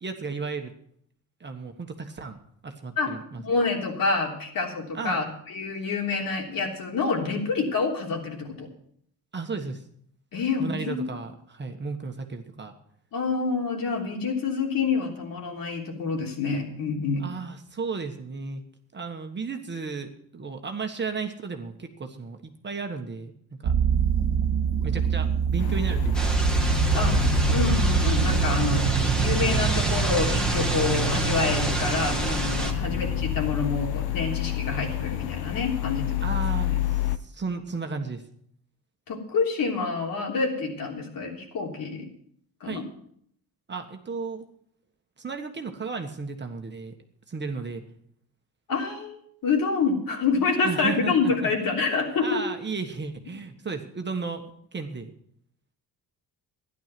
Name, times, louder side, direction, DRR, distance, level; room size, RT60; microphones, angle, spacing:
voice 1, 0.0-0.7 1.4-3.4 4.9-5.2 9.3-9.8 10.6-12.7 17.2-18.6 18.9-23.3 23.6-23.7 24.8-26.3 32.8-33.0 36.2-38.2 42.6-42.8 43.7-44.4 45.2-46.9 47.3-47.8 50.6-51.7 52.2-55.1, right 4 dB, 30° right, 5 dB, 1.4 m, -34 dB
voice 2, 3.4-8.7 10.3-11.0 13.1-17.2 26.9-27.1 27.5-36.2 36.7-36.8 39.1-42.1 42.6-42.8 48.7-52.4, left 4 dB, 60° left, 0 dB, 3.5 m, -27 dB
sound 1, 23.6-35.1, right 7 dB, 85° right, 1.7 m, -26 dB
sound 2, 25.6-37.2, left 14 dB, 85° left, 0.9 m, -30 dB
sound 3, 26.1-32.7, right 1 dB, ahead, 1.7 m, -30 dB
13.0 x 11.0 x 6.0 m, 0.67 s
cardioid pair, 120°, 38 cm